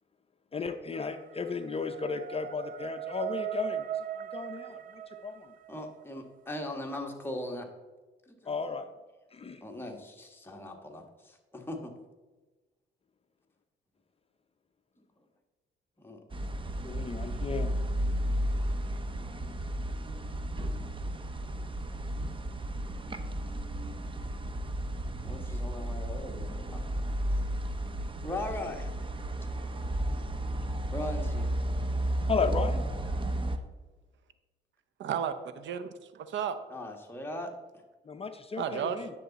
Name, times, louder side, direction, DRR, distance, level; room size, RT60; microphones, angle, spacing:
voice 1, 0.5-5.5 8.5-8.9 9.3-9.6 16.8-17.7 32.3-32.8 38.1-39.1, left 5 dB, 30° left, 7 dB, 0.6 m, -34 dB
sound 1, 0.9-5.9, right 10 dB, 45° right, 0.4 m, -38 dB
voice 2, 5.7-7.7 8.3-8.5 9.6-11.9 15.0-15.1 16.0-16.2 25.2-26.9 28.2-28.9 30.9-31.5 33.0-33.4 36.7-37.5, left 1 dB, 10° left, 2 dB, 1.5 m, -39 dB
sound 2, 16.3-33.6, right 1 dB, 25° right, 0.8 m, -33 dB
voice 3, 35.0-36.6 38.6-39.1, right 8 dB, 70° right, 11 dB, 0.7 m, -33 dB
10.0 x 6.9 x 4.1 m, 1.2 s
cardioid pair, 90°, 20 cm